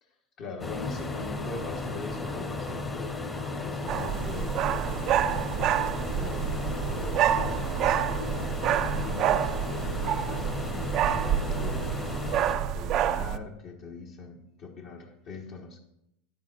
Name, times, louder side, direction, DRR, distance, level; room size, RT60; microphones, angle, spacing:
voice 1, 0.0-3.1 3.6-5.5 6.1-8.4 8.8-15.8, left 4 dB, 50° left, 1 dB, 1.4 m, -42 dB
sound 1, 0.6-12.5, left 3 dB, 20° left, 1.1 m, -34 dB
sound 2, 3.9-13.4, right 10 dB, 50° right, 0.4 m, -28 dB
13.0 x 9.9 x 2.6 m, 0.82 s
hypercardioid pair, 95°, 0 cm